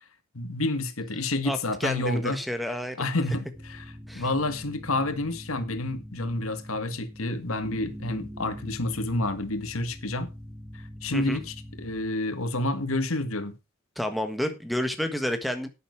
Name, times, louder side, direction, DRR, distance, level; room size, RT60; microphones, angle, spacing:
voice 1, 0.3-2.4 3.0-3.9 4.1-10.3 11.0-13.6, left 2 dB, 85° left, 1.9 m, -29 dB
voice 2, 1.4-3.0 4.1-4.3 11.1-11.4 14.0-15.7, equal, ahead, 1.4 m, -30 dB
sound 1, 3.5-12.1, equal, 30° right, 3.9 m, -43 dB
11.5 x 9.3 x 4.7 m
head